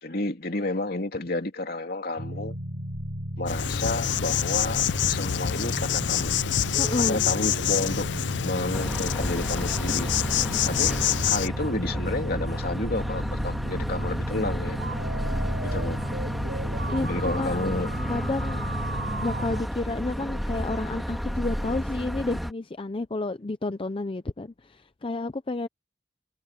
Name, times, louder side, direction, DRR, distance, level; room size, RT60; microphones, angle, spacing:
voice 1, 0.0-2.5 3.4-6.4 7.0-8.1 8.4-10.3 10.7-11.0 11.3-14.8 15.6-16.0 17.1-17.9, left 2 dB, 55° left, 2.8 m, -31 dB
sound 1, 2.2-19.6, equal, 70° right, 4.0 m, -34 dB
Insect, 3.5-11.5, left 10 dB, 80° left, 0.5 m, -27 dB
voice 2, 6.8-7.2 16.9-17.6 18.1-18.6 19.2-25.7, left 2 dB, 30° left, 0.6 m, -30 dB
sound 2, 8.7-22.5, equal, ahead, 1.7 m, -32 dB
head